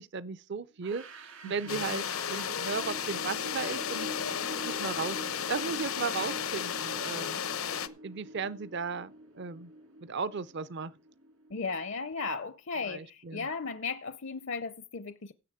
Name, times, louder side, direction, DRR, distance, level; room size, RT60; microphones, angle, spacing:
voice 1, 0.0-4.1 4.6-7.4 8.0-9.7 10.0-10.9 12.8-13.5, right 5 dB, 55° right, 0.5 m, -36 dB
sound 1, 0.8-11.7, right 1 dB, 70° right, 2.2 m, -46 dB
voice 2, 1.4-2.0 11.5-15.3, left 4 dB, 60° left, 0.6 m, -36 dB
sound 2, 1.7-7.9, left 8 dB, 85° left, 0.9 m, -34 dB
16.5 x 7.1 x 4.9 m
head